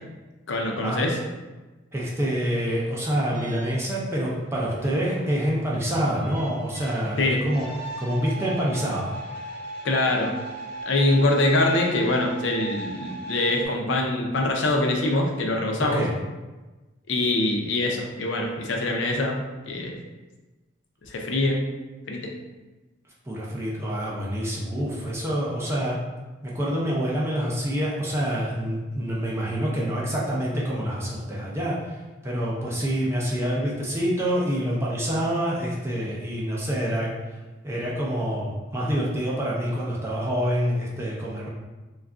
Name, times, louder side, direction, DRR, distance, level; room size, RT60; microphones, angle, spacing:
voice 1, 0.5-1.2 7.2-7.4 9.8-10.3 10.9-16.0 17.1-19.9 21.0-21.6 22.1-22.3, left 2 dB, 75° left, 1 dB, 0.5 m, -24 dB
voice 2, 1.9-7.7 8.0-9.1 15.9-16.1 23.2-26.0 26.4-32.0 32.2-37.1 37.6-41.5, equal, 15° right, -5 dB, 0.4 m, -26 dB
sound 1, 3.3-13.7, right 1 dB, 50° right, 0.7 m, -39 dB
2.3 x 2.2 x 3.6 m, 1.2 s
head